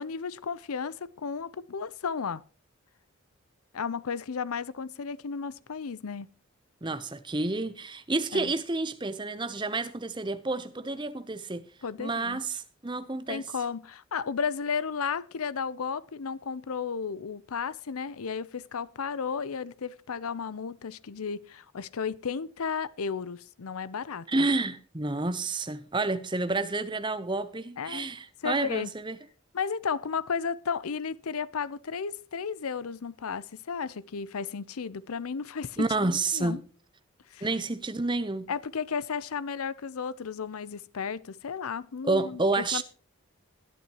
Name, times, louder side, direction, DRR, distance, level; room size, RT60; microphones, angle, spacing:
voice 1, 0.0-2.4 3.7-6.3 8.3-8.5 11.8-12.4 13.3-24.3 27.8-28.1 28.4-28.9 29.5-35.9 36.3-36.6 37.3-37.5 38.5-42.8, left 6 dB, 80° left, 0.6 m, -33 dB
voice 2, 6.8-11.6 12.0-13.4 24.3-29.2 35.8-36.6 37.4-38.5 42.0-42.8, right 3 dB, 20° right, 0.8 m, -29 dB
20.5 x 8.6 x 3.0 m
head